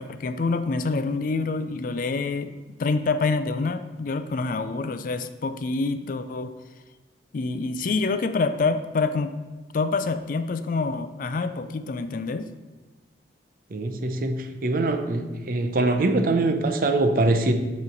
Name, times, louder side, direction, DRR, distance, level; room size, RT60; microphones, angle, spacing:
voice 1, 0.0-2.5 2.8-6.5 7.3-9.3 9.7-12.5, left 3 dB, 50° left, 10 dB, 0.4 m, -26 dB
voice 2, 13.7-17.5, right 2 dB, 50° right, 6 dB, 0.6 m, -23 dB
8.3 x 3.1 x 5.1 m, 1.3 s
head